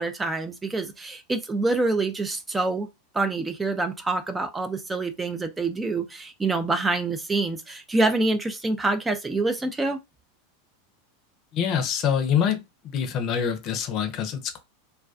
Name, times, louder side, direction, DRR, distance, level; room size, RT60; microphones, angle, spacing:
voice 1, 0.0-2.9 3.1-10.0, right 3 dB, 15° right, 0.4 m, -26 dB
voice 2, 11.5-12.6 12.9-14.6, left 8 dB, 45° left, 0.6 m, -25 dB
2.2 x 2.2 x 2.4 m
hypercardioid pair, 95°, 0 cm